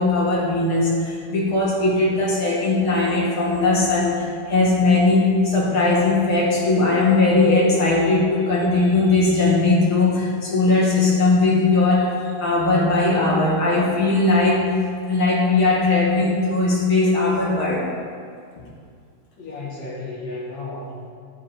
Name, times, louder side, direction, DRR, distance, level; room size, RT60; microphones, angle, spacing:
voice 1, 0.0-12.1 12.4-14.6 15.0-17.9, left 3 dB, 50° left, -4 dB, 2.3 m, -19 dB
voice 2, 19.4-21.1, left 2 dB, 65° left, -9 dB, 3.6 m, -33 dB
12.5 x 10.5 x 3.6 m, 2.2 s
omnidirectional pair, 3.5 m